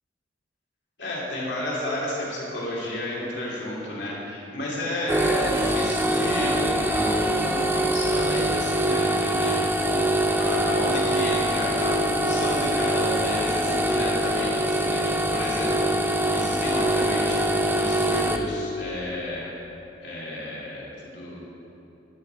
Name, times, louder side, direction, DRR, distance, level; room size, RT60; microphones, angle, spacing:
voice 1, 1.0-9.6 9.8-10.0 10.2-19.5 20.0-21.4, left 1 dB, 70° left, -5 dB, 2.8 m, -32 dB
sound 1, 5.1-18.4, right 1 dB, 10° right, 0.5 m, -24 dB
12.0 x 8.6 x 4.6 m, 2.9 s
head